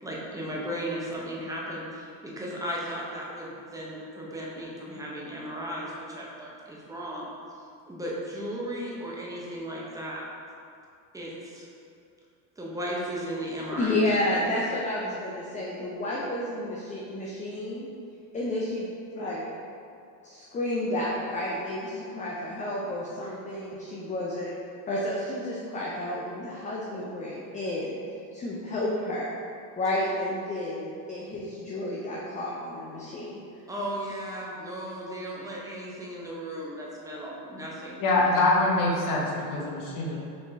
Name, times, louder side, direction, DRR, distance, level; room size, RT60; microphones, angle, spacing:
voice 1, 0.0-7.3 7.9-10.2 11.1-11.7 12.6-14.4 33.7-38.0, equal, 10° right, -5 dB, 0.7 m, -36 dB
voice 2, 13.7-17.9 18.3-18.9 19.1-19.4 20.2-24.5 24.9-28.0 28.3-29.3 29.8-33.4, left 1 dB, 20° left, -5 dB, 0.3 m, -31 dB
voice 3, 38.0-40.2, left 2 dB, 45° left, -3 dB, 0.9 m, -24 dB
4.4 x 2.9 x 2.7 m, 2.5 s
supercardioid pair, 90°, 45 cm